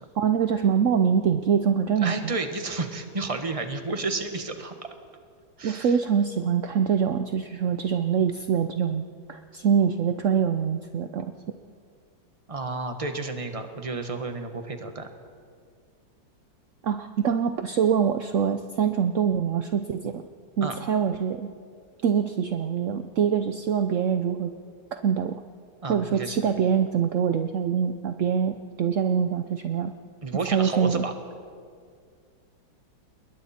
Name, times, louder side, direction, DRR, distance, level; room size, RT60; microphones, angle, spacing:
voice 1, 0.2-2.3 5.6-9.0 9.3-11.3 16.8-20.2 20.6-21.5 22.0-24.5 24.9-25.4 25.9-29.9 30.5-31.0, right 7 dB, 65° right, 8 dB, 0.8 m, -24 dB
voice 2, 2.0-4.7 5.6-5.9 12.5-15.1 20.6-20.7 25.8-26.5 30.2-31.1, right 3 dB, 20° right, 6 dB, 1.2 m, -31 dB
28.0 x 21.5 x 4.3 m, 2.1 s
omnidirectional pair, 2.1 m